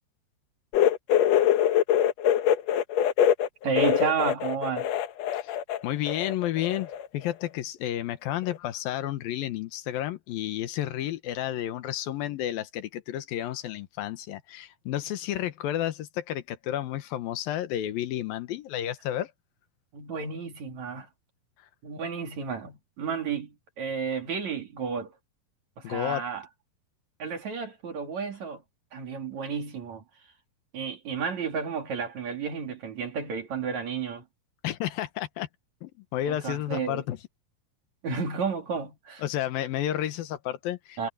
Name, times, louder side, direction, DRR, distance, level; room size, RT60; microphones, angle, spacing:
sound 1, 0.7-5.8 6.1-7.1 7.3-7.5 8.5-8.6, left 10 dB, 70° left, 1.6 m, -23 dB
voice 1, 3.6-4.9 19.9-21.1 21.8-25.1 25.8-26.5 27.2-28.6 28.9-30.0 30.7-34.2 36.3-37.0 38.0-39.2 41.0-41.1, right 6 dB, 55° right, 3.9 m, -32 dB
voice 2, 5.8-19.3 25.8-26.2 34.6-35.5 35.8-37.2 39.2-41.1, left 12 dB, 90° left, 3.0 m, -31 dB
omnidirectional pair, 4.1 m